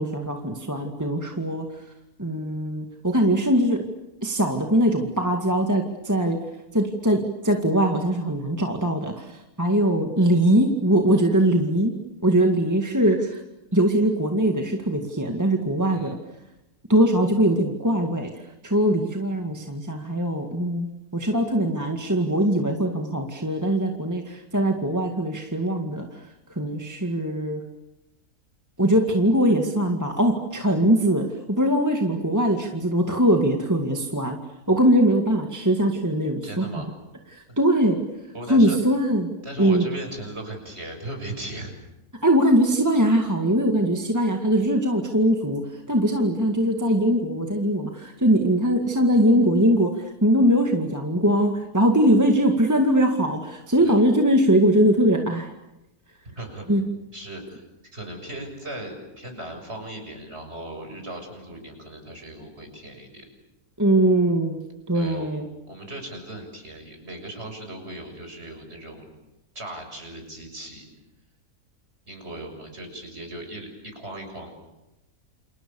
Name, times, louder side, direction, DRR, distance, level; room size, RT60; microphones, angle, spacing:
voice 1, 0.0-1.6 2.2-3.8 4.2-6.4 6.7-11.9 12.2-13.4 13.7-16.2 16.9-18.3 18.6-26.2 26.6-27.6 28.8-34.4 34.7-36.6 37.3-38.0 38.5-39.3 39.6-39.9 42.2-45.6 45.9-49.9 50.2-55.5 56.7-56.8 63.8-64.6 64.9-65.5, right 1 dB, 10° right, 2 dB, 2.0 m, -21 dB
voice 2, 36.4-36.9 38.3-38.8 39.4-41.7 53.8-54.0 56.4-56.6 57.1-57.6 57.9-63.3 64.9-65.3 65.7-69.1 69.6-70.9 72.1-74.5, right 1 dB, 40° right, 4 dB, 7.1 m, -37 dB
29.0 x 28.0 x 7.1 m, 0.97 s
omnidirectional pair, 1.6 m